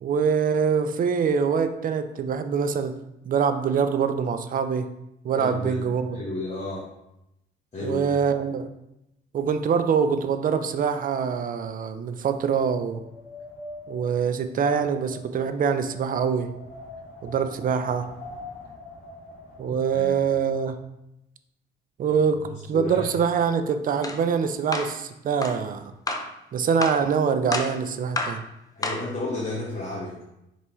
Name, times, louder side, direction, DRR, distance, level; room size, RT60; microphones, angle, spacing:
voice 1, 0.0-2.9 3.2-4.9 5.2-6.2 7.8-8.7 9.3-13.0 13.9-16.5 17.2-18.1 19.6-20.8 22.0-25.8 26.5-28.4, right 6 dB, 45° right, 10 dB, 0.4 m, -24 dB
voice 2, 5.4-5.8 6.1-6.9 7.7-8.2 19.9-20.2 22.5-23.1 28.7-30.2, left 2 dB, 35° left, -6 dB, 1.1 m, -32 dB
Wind, 11.5-20.7, left 2 dB, 75° left, 1.3 m, -44 dB
sound 1, 24.0-24.2 24.7-25.0 25.4-25.6 26.1-26.3 26.8-27.1 27.5-27.8 28.2-28.4 28.8-29.1, left 2 dB, 20° left, 0.5 m, -29 dB
4.4 x 3.4 x 3.1 m, 0.85 s
cardioid pair, 90°, 20 cm